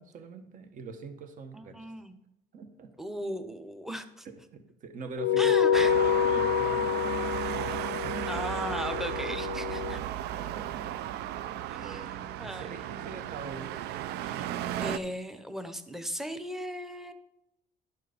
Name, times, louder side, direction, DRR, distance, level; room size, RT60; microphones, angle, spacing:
voice 1, 0.0-1.9 2.5-2.9 4.2-8.2 10.3-11.0 11.8-13.8 14.3-14.6, right 4 dB, 50° right, 7 dB, 1.0 m, -44 dB
voice 2, 1.5-2.2 3.0-4.3 5.4-5.9 8.3-10.0 11.7-12.9 14.2-14.4 14.8-17.1, equal, ahead, 9 dB, 0.8 m, -37 dB
sound 1, 5.2-10.0, left 8 dB, 80° left, 0.5 m, -27 dB
Traffic noise roadway noise, 5.7-15.0, right 12 dB, 80° right, 0.4 m, -35 dB
11.5 x 4.5 x 5.1 m, 0.81 s
cardioid pair, 110°, 17 cm